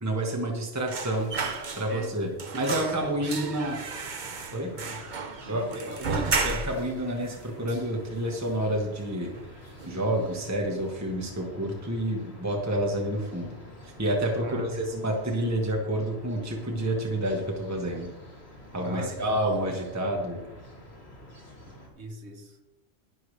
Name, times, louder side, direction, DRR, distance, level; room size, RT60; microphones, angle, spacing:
voice 1, 0.0-1.3 1.8-2.3 2.5-3.8 4.5-4.7 5.5-9.3 9.9-13.6 13.8-18.1 18.7-20.4, right 1 dB, 15° right, 0 dB, 1.4 m, -29 dB
sound 1, 0.9-2.1 2.4-6.9 7.3-7.4 7.7-8.5 8.8-9.0 9.3-10.0 10.3-10.5, right 4 dB, 45° right, 1.0 m, -33 dB
voice 2, 1.2-3.8 4.5-5.0 5.4-6.3 14.4-15.0 18.8-19.5 21.9-22.6, right 1 dB, 75° right, 3 dB, 1.6 m, -41 dB
sound 2, 2.6-21.9, left 1 dB, 65° left, 3.6 m, -48 dB
21.0 x 7.1 x 3.3 m, 1.0 s
omnidirectional pair, 1.2 m